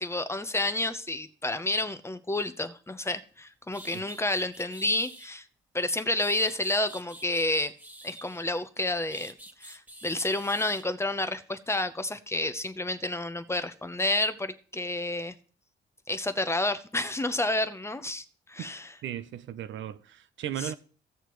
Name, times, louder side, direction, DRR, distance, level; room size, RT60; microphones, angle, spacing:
voice 1, 0.0-5.5 5.7-7.7 8.0-15.3 16.1-18.9 20.6-20.7, left 2 dB, 15° left, 0.8 m, -30 dB
sound 1, 3.3-3.4 3.7-5.3 5.9-8.6 9.1-10.9, right 1 dB, 10° right, 1.5 m, -48 dB
voice 2, 19.0-20.7, right 11 dB, 70° right, 0.7 m, -36 dB
16.5 x 6.6 x 3.1 m
cardioid pair, 90°, 20 cm